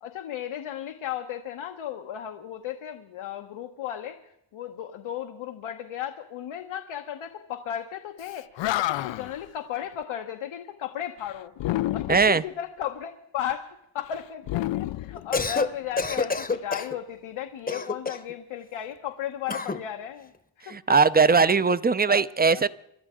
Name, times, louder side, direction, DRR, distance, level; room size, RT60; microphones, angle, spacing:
voice 1, 0.0-8.5 8.7-11.5 11.9-20.3 20.6-21.0 21.5-21.7 22.1-22.2 22.5-22.6, left 10 dB, 90° left, 1.1 m, -35 dB
Animal, 8.2-8.3 8.6-9.4 11.6-12.4 14.4-15.8, left 15 dB, 70° left, 0.5 m, -29 dB
voice 2, 12.1-12.4 20.7-22.7, right 5 dB, 20° right, 0.5 m, -20 dB
Cough, 15.2-15.7 16.0-17.0 17.7-18.3 19.5-19.8, left 3 dB, 20° left, 0.8 m, -28 dB
26.0 x 12.0 x 3.7 m
cardioid pair, 85°, 47 cm